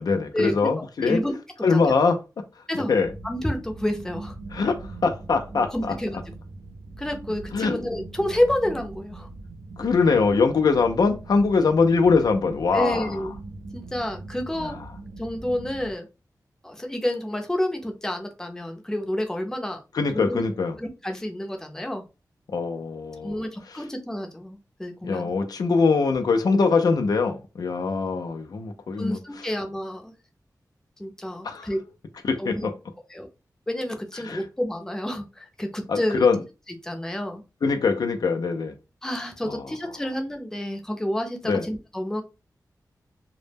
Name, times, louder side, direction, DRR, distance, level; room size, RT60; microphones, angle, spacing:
voice 1, 0.0-1.2 1.6-2.2 2.9-3.1 4.5-5.9 7.5-7.8 9.8-13.1 14.6-14.8 19.9-20.7 22.5-23.4 23.7-23.8 25.0-29.5 31.4-31.7 32.2-32.7 34.2-34.4 35.9-36.4 37.6-38.7 39.4-39.6 41.5-41.6, left 4 dB, 70° left, 0.3 m, -22 dB
voice 2, 1.0-1.3 1.7-1.9 2.7-3.0 3.2-4.3 5.7-6.2 7.0-9.3 12.7-13.3 13.7-14.7 15.2-16.1 16.6-19.8 20.1-20.4 20.8-22.0 23.2-25.3 29.0-30.1 31.0-31.8 32.4-32.7 33.1-33.3 33.7-36.2 36.8-37.4 39.0-42.2, left 1 dB, 10° left, 0.5 m, -29 dB
sound 1, 3.0-15.9, right 2 dB, 85° right, 0.3 m, -41 dB
2.0 x 2.0 x 3.2 m
wide cardioid pair, 70°, 7 cm